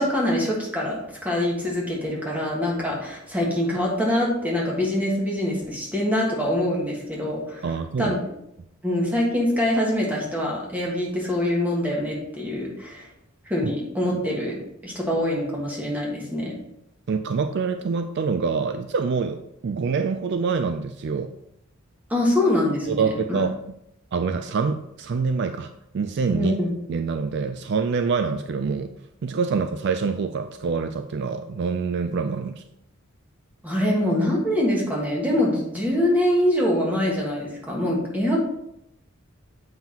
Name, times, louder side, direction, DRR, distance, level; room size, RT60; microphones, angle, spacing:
voice 1, 0.0-7.6 8.0-8.2 8.8-13.1 13.5-14.5 14.8-16.6 22.1-23.4 26.3-26.7 33.6-38.4, left 1 dB, 10° right, -3 dB, 1.6 m, -24 dB
voice 2, 7.6-8.2 17.1-21.3 22.9-23.5 24.1-26.5 26.9-28.9 29.2-32.6, right 5 dB, 55° right, 8 dB, 0.3 m, -26 dB
7.4 x 5.6 x 2.9 m, 0.79 s
head